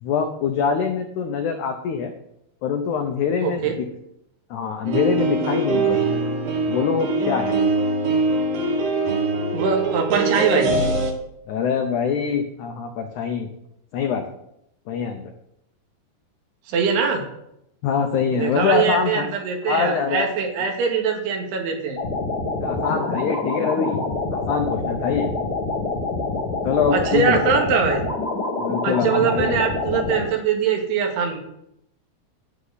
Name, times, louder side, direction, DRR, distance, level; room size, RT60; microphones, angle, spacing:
voice 1, 0.0-2.1 2.6-3.9 4.5-6.0 6.7-7.5 11.5-13.5 13.9-14.3 14.9-15.3 17.8-19.2 19.7-20.3 22.6-24.0 24.3-25.3 26.6-27.6 28.6-29.6, left 6 dB, 85° left, 5 dB, 1.7 m, -24 dB
voice 2, 3.4-3.8 9.5-10.7 16.7-17.2 18.3-22.0 26.9-28.0 28.8-31.4, right 6 dB, 80° right, 2 dB, 3.8 m, -22 dB
sound 1, 4.9-11.1, right 3 dB, 60° right, 2.5 m, -22 dB
sound 2, 22.0-30.2, left 3 dB, 40° left, 1.3 m, -26 dB
12.0 x 9.7 x 4.0 m, 0.79 s
omnidirectional pair, 4.7 m